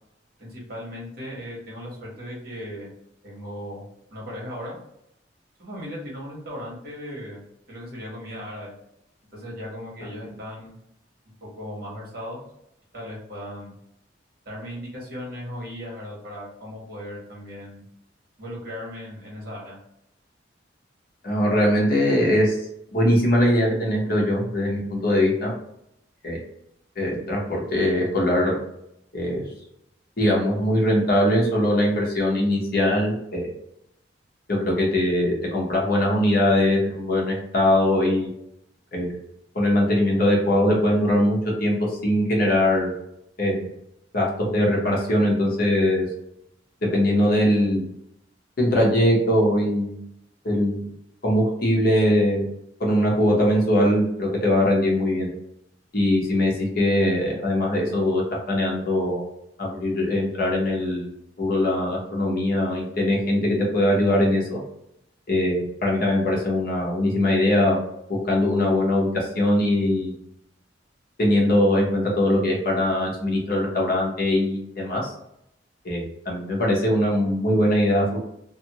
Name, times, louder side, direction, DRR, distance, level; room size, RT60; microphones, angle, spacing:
voice 1, 0.4-2.9 3.2-3.8 4.1-4.8 5.6-7.4 7.7-8.7 9.3-10.7 11.6-12.4 12.9-13.8 14.4-17.8 18.4-19.8, equal, 55° right, -4 dB, 1.2 m, -37 dB
voice 2, 21.2-22.6 22.9-25.5 26.2-26.4 27.0-28.6 29.1-29.4 30.2-33.5 34.6-38.3 38.9-39.2 39.5-41.7 42.0-42.9 43.4-43.7 44.1-46.1 46.9-47.9 48.6-50.0 50.4-50.9 51.2-52.4 52.8-55.3 55.9-58.2 58.5-59.2 59.6-64.6 65.3-67.8 68.1-70.1 71.2-75.1 75.8-78.2, left 1 dB, 55° left, -2 dB, 0.9 m, -21 dB
2.6 x 2.5 x 2.9 m, 0.79 s
head